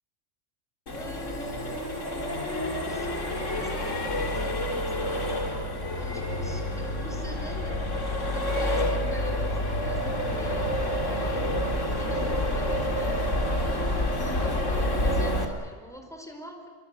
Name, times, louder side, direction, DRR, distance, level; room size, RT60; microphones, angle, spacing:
Accelerating revving vroom, 0.9-15.4, left 1 dB, 75° left, 3.3 m, -28 dB
voice 1, 0.9-1.9 2.9-5.7 5.9-7.8 8.2-13.7 14.2-16.7, equal, ahead, 4 dB, 4.7 m, -44 dB
27.0 x 23.5 x 8.3 m, 1.5 s
omnidirectional pair, 1.3 m